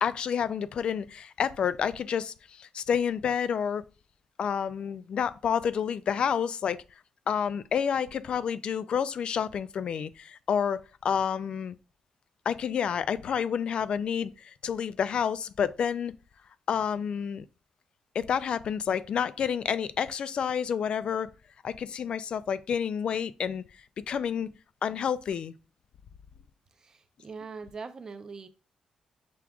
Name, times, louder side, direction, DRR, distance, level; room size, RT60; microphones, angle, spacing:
voice 1, 0.0-3.8 4.4-6.8 7.3-11.8 12.5-16.1 16.7-17.4 18.1-21.3 21.6-23.6 24.1-24.5 24.8-25.5, left 7 dB, 50° left, 0.3 m, -29 dB
voice 2, 26.8-28.5, right 4 dB, 30° right, 0.5 m, -42 dB
5.9 x 2.4 x 3.5 m
wide cardioid pair, 150°, 2 cm